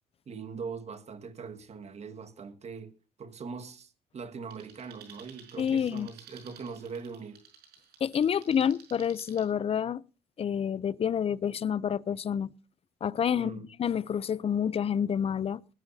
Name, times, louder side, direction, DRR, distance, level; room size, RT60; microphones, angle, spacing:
voice 1, 0.3-7.4 13.3-13.7, right 5 dB, 40° right, 1.7 m, -41 dB
sound 1, 4.5-9.5, right 7 dB, 75° right, 6.1 m, -54 dB
voice 2, 5.6-6.1 8.0-10.0 10.4-12.5 13.0-15.6, left 8 dB, 35° left, 0.6 m, -28 dB
20.0 x 14.0 x 2.8 m
cardioid pair, 110°, 17 cm